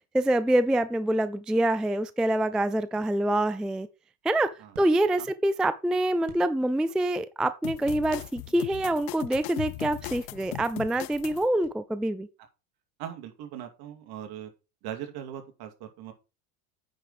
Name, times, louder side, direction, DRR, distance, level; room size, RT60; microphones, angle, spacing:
voice 1, 0.1-3.9 4.2-4.5 4.8-12.3, right 1 dB, ahead, 0.3 m, -26 dB
sound 1, 3.9-7.1 7.4-9.6 9.9-10.0 10.4-12.2, right 8 dB, 80° right, 2.9 m, -55 dB
sound 2, 7.6-11.5, left 25 dB, 65° left, 0.5 m, -38 dB
voice 2, 13.0-14.5 14.8-16.1, right 10 dB, 55° right, 2.6 m, -39 dB
8.8 x 5.7 x 5.0 m
hypercardioid pair, 95°, 43 cm